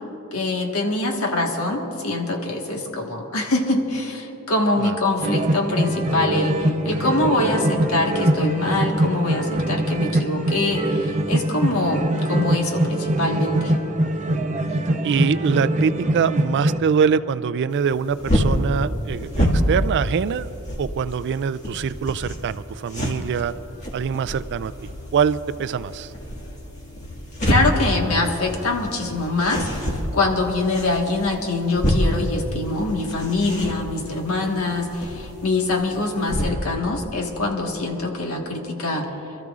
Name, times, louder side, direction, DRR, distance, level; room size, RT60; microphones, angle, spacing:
voice 1, 0.1-13.7 27.4-29.9 30.1-39.1, left 2 dB, 70° left, 1 dB, 1.5 m, -24 dB
sound 1, 5.2-16.8, right 1 dB, 35° right, 0.7 m, -23 dB
voice 2, 14.7-20.5 20.8-23.5 23.9-24.7 25.1-26.1, right 6 dB, 55° right, 15 dB, 0.3 m, -23 dB
sound 2, 17.7-36.5, equal, 35° left, 1.9 m, -28 dB
26.5 x 13.5 x 2.5 m, 3.0 s
head